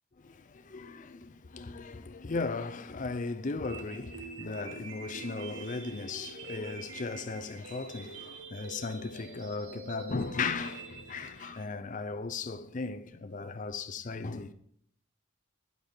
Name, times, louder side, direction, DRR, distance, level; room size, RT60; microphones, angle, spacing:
voice 1, 0.2-14.5, left 4 dB, 40° left, 0.5 m, -37 dB
sound 1, 3.6-11.6, right 4 dB, 80° right, 1.3 m, -46 dB
8.8 x 8.2 x 4.3 m
head